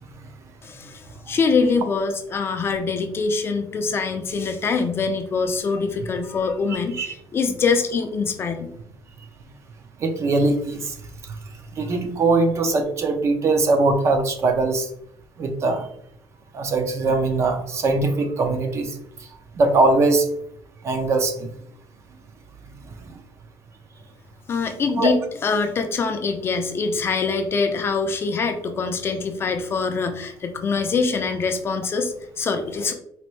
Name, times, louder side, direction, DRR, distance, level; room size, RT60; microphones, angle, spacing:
voice 1, 0.6-8.7 24.5-32.9, left 4 dB, 30° left, 6 dB, 0.4 m, -24 dB
voice 2, 6.7-7.1 10.0-11.0 11.8-14.9 15.4-15.9 16.5-19.0 19.6-20.3 20.8-21.5 25.0-25.1, right 3 dB, 35° right, 7 dB, 0.5 m, -21 dB
4.2 x 2.6 x 3.1 m, 0.70 s
cardioid pair, 140°, 8 cm